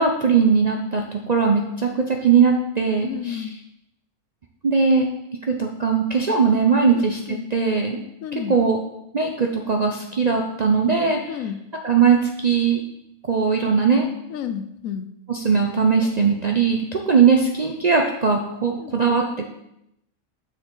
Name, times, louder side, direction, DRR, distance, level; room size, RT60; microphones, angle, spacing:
voice 1, 0.0-3.4 4.6-5.1 5.5-8.0 8.3-8.8 9.1-11.4 11.8-12.8 13.3-14.1 15.3-19.2, right 5 dB, 45° right, 1 dB, 0.5 m, -20 dB
voice 2, 3.0-3.5 6.9-7.5 8.2-8.6 11.3-11.6 14.3-15.1 18.8-19.0, left 9 dB, 75° left, 10 dB, 1.0 m, -31 dB
7.1 x 6.2 x 3.8 m, 0.82 s
omnidirectional pair, 1.5 m